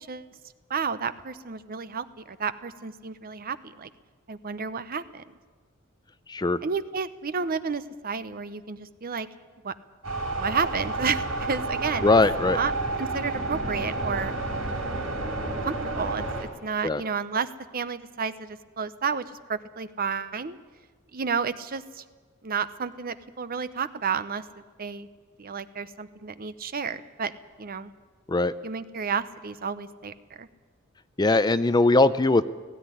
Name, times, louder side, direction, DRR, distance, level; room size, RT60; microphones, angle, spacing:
voice 1, 0.7-3.9 4.3-5.2 6.6-9.3 9.6-9.7 10.4-12.1 12.5-12.7 13.0-14.3 15.6-20.6 21.1-22.0 22.4-24.4 24.8-25.1 25.4-27.3 27.6-27.9 28.6-30.5, right 5 dB, 45° right, 13 dB, 0.8 m, -31 dB
voice 2, 6.3-6.6 12.0-12.6 16.8-17.0 28.3-28.5 31.2-32.4, left 2 dB, 20° left, 14 dB, 0.5 m, -20 dB
sound 1, 10.0-16.4, right 2 dB, 90° right, 4.2 m, -30 dB
17.0 x 16.5 x 9.9 m, 1.4 s
head